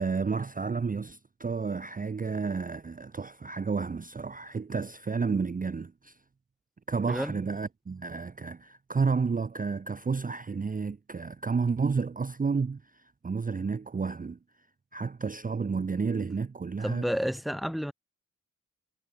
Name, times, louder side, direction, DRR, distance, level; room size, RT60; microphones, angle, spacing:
voice 1, 0.0-6.2 6.9-14.4 14.9-17.0, right 5 dB, 25° right, 0.6 m, -31 dB
voice 2, 7.1-7.4 16.8-17.9, equal, ahead, 3.5 m, -30 dB
cardioid pair, 50°, 33 cm